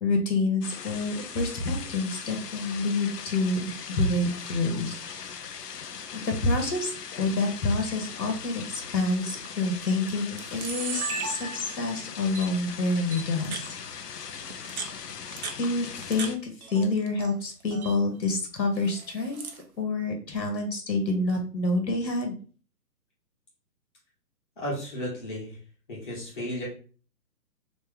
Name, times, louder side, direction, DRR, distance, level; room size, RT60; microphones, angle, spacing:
voice 1, 0.0-3.7 4.0-4.9 6.1-6.9 7.2-13.6 15.6-19.4 19.8-22.3, left 2 dB, 85° left, 3 dB, 1.5 m, -27 dB
sound 1, 0.6-16.4, left 7 dB, 70° left, 0.7 m, -40 dB
Camera, 9.2-9.5 10.1-10.2 10.4-11.9 12.3-12.5 13.1-13.7 14.5-16.3 16.6-17.3 17.6-17.9 18.7-19.6, right 4 dB, 60° right, 0.7 m, -36 dB
voice 2, 24.6-25.6 25.9-26.7, equal, 30° left, -6 dB, 1.3 m, -34 dB
3.1 x 3.0 x 3.6 m, 0.38 s
hypercardioid pair, 175°, 50 cm